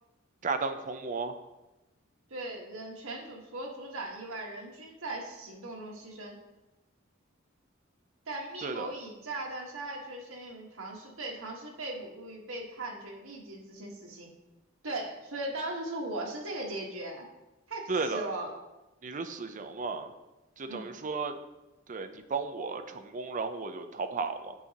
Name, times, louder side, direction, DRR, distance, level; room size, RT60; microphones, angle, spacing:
voice 1, 0.4-1.3 8.6-8.9 17.9-18.3 19.0-20.1 20.6-21.4 21.9-24.5, right 4 dB, 40° right, 8 dB, 0.5 m, -34 dB
voice 2, 2.3-6.4 8.3-14.3 14.8-17.2 17.7-18.5 20.7-20.9, right 2 dB, 80° right, -1 dB, 1.3 m, -39 dB
8.3 x 5.9 x 2.8 m, 1.0 s
head